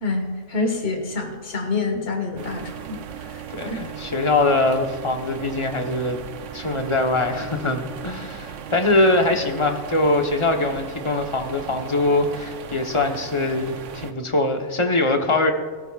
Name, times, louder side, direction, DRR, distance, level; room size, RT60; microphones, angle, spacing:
voice 1, 0.0-3.0 3.3-3.8, left 3 dB, 50° left, 4 dB, 1.8 m, -27 dB
sound 1, 2.4-14.1, right 8 dB, 75° right, 1.0 m, -37 dB
voice 2, 3.5-6.2 6.5-15.5, left 2 dB, 25° left, 4 dB, 1.0 m, -22 dB
21.5 x 13.0 x 2.4 m, 1.5 s
omnidirectional pair, 1.3 m